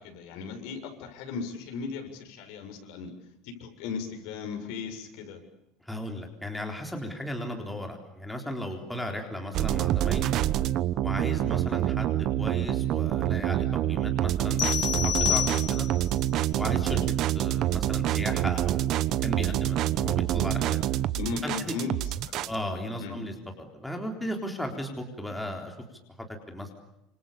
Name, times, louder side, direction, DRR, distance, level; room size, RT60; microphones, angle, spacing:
voice 1, 0.0-3.1 3.4-5.4 11.9-12.1 21.2-22.6 23.0-23.2, left 5 dB, 65° left, 4 dB, 7.2 m, -37 dB
voice 2, 5.9-10.3 11.0-12.1 12.4-15.9 16.5-17.0 17.3-20.8 21.4-21.8 22.5-25.8 26.2-26.7, left 1 dB, 5° left, 2 dB, 3.9 m, -36 dB
sound 1, 9.5-22.6, right 13 dB, 45° right, 1.1 m, -26 dB
sound 2, 14.6-16.2, left 13 dB, 40° left, 1.3 m, -28 dB
28.5 x 27.5 x 7.1 m, 0.85 s
cardioid pair, 165°, 0 cm